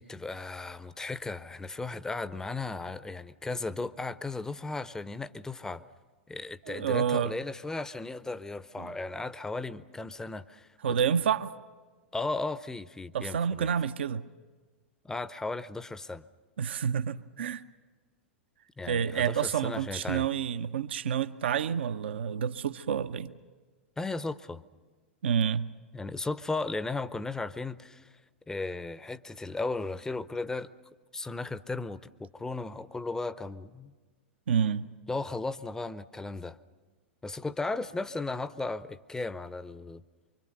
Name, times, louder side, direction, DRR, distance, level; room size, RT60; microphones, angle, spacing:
voice 1, 0.0-5.9 6.3-11.0 12.1-13.7 15.0-16.3 18.8-20.3 24.0-24.6 25.9-28.1 28.5-30.7 31.1-33.9 35.1-36.6 37.2-40.0, left 3 dB, 10° left, 0.7 m, -36 dB
voice 2, 6.7-7.3 8.8-8.9 10.8-11.5 13.1-14.2 16.6-17.6 18.9-23.4 25.2-25.7 34.5-34.9, right 7 dB, 65° right, 0.7 m, -29 dB
25.5 x 24.5 x 6.7 m
figure-of-eight pair, 95°, 7 cm